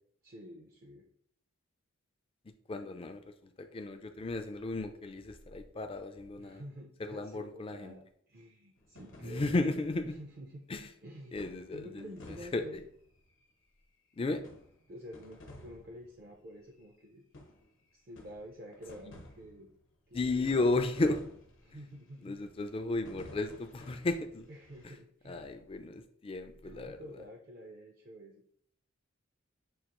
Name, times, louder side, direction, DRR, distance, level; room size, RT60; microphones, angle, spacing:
voice 1, 0.2-1.1 6.4-9.5 10.0-10.7 11.0-12.8 14.9-17.2 17.9-19.7 20.1-20.7 21.6-22.4 24.5-25.5 26.6-28.4, equal, 45° right, 1 dB, 0.5 m, -49 dB
voice 2, 2.7-6.6 7.0-8.0 9.2-10.2 10.7-10.9 11.3-12.6 14.2-14.4 19.1-19.2 20.1-21.2 22.2-24.5 25.3-27.0, left 2 dB, 25° left, 7 dB, 0.3 m, -34 dB
sound 1, 8.8-10.2 11.4-13.5 14.4-16.4 16.9-17.0 17.3-17.8 18.2-19.8 20.2-22.0 22.5-25.0, left 1 dB, 70° left, 0.9 m, -53 dB
6.4 x 2.4 x 2.9 m, 0.64 s
head